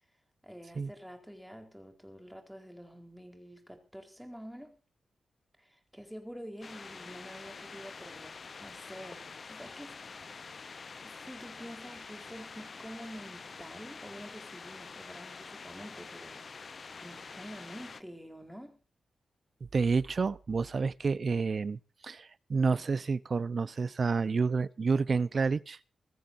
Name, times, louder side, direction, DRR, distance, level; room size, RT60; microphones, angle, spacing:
voice 1, 0.4-4.8 5.6-10.0 10.6-18.8, equal, ahead, 4.2 m, -48 dB
sound 1, 6.6-18.0, left 4 dB, 40° left, 0.8 m, -46 dB
voice 2, 19.6-25.8, right 4 dB, 40° right, 0.8 m, -29 dB
25.0 x 14.5 x 2.7 m
wide cardioid pair, 130°, 0 cm